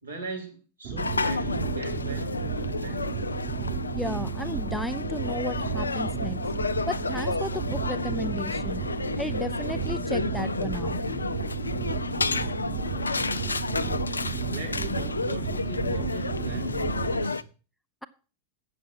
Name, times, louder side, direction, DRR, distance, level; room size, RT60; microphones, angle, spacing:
voice 1, 0.0-3.1 13.7-17.5, right 4 dB, 80° right, 3.7 m, -40 dB
sound 1, 0.8-17.3, right 7 dB, 45° right, 2.0 m, -33 dB
sound 2, 1.0-17.4, left 4 dB, 75° left, 0.4 m, -31 dB
voice 2, 3.9-6.4 6.9-8.8 9.1-11.0, left 1 dB, ahead, 0.5 m, -34 dB
8.5 x 6.8 x 7.4 m
figure-of-eight pair, 90°, 0 cm